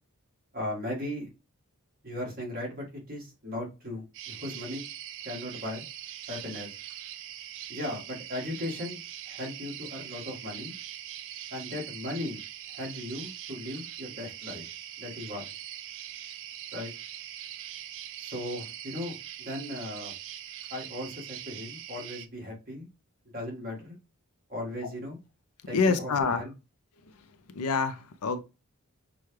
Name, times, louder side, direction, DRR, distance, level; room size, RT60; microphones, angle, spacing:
voice 1, 0.5-1.3 2.0-4.8 5.2-5.8 6.3-6.7 7.7-9.0 9.3-10.7 11.5-12.4 12.7-14.7 15.0-15.5 16.7-16.9 18.2-20.1 20.7-22.9 23.3-24.0 24.5-25.2 25.7-26.5, left 1 dB, 40° right, 1.8 m, -37 dB
sound 1, 4.1-22.3, right 11 dB, 60° right, 0.4 m, -42 dB
voice 2, 25.7-26.4 27.0-28.4, left 4 dB, 80° left, 0.5 m, -27 dB
6.0 x 2.3 x 3.2 m
head